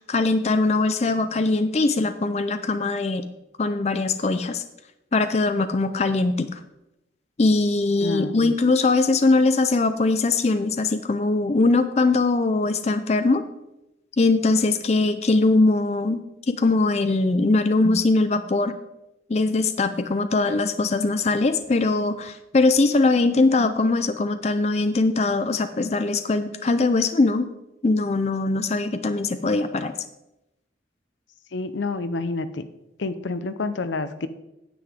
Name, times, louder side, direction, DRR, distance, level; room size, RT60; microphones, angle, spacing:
voice 1, 0.0-3.3 3.6-4.6 5.1-6.6 7.4-13.4 14.2-18.8 19.3-27.5 27.8-29.9, left 3 dB, 35° left, 10 dB, 0.4 m, -21 dB
voice 2, 8.0-8.5 31.5-32.6 33.0-34.3, left 3 dB, 85° left, 12 dB, 0.6 m, -28 dB
9.7 x 7.8 x 3.6 m, 0.91 s
head